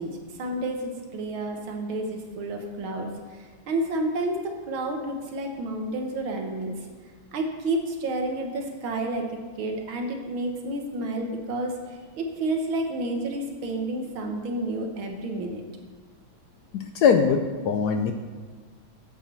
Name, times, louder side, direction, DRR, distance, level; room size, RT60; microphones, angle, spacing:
voice 1, 0.0-6.7 7.3-9.3 9.6-15.6, right 1 dB, 90° right, 3 dB, 2.0 m, -30 dB
voice 2, 16.7-18.1, left 6 dB, 70° left, 6 dB, 1.0 m, -22 dB
8.4 x 6.0 x 6.9 m, 1.5 s
omnidirectional pair, 2.2 m